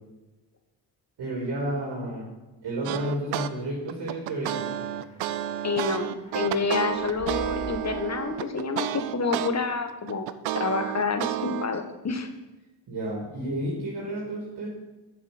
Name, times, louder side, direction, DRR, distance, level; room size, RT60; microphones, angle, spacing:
voice 1, 1.2-2.3 2.6-4.6 12.9-14.7, right 1 dB, 60° right, -3 dB, 3.1 m, -31 dB
sound 1, 2.8-3.5 3.9-9.5 9.9-11.7, right 13 dB, 90° right, 0.6 m, -31 dB
sound 2, 3.6-7.8, left 2 dB, 15° left, 3.6 m, -45 dB
voice 2, 5.6-10.3 10.6-12.3, left 4 dB, 35° left, 7 dB, 1.7 m, -28 dB
7.3 x 7.0 x 7.9 m, 1.0 s
supercardioid pair, 60°, 44 cm